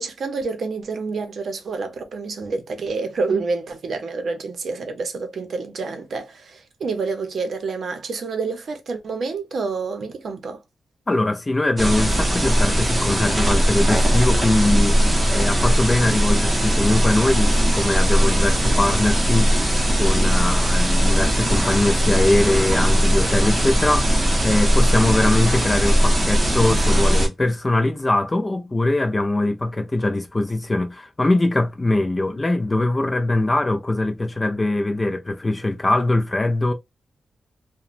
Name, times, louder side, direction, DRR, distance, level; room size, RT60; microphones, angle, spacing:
voice 1, 0.0-10.6, right 4 dB, 60° right, 0.6 m, -28 dB
voice 2, 11.1-15.0 15.3-19.5 19.9-36.7, left 2 dB, 20° left, 0.4 m, -22 dB
sound 1, 11.8-27.3, equal, 15° right, 0.7 m, -19 dB
3.0 x 2.1 x 2.4 m
wide cardioid pair, 155°, 0 cm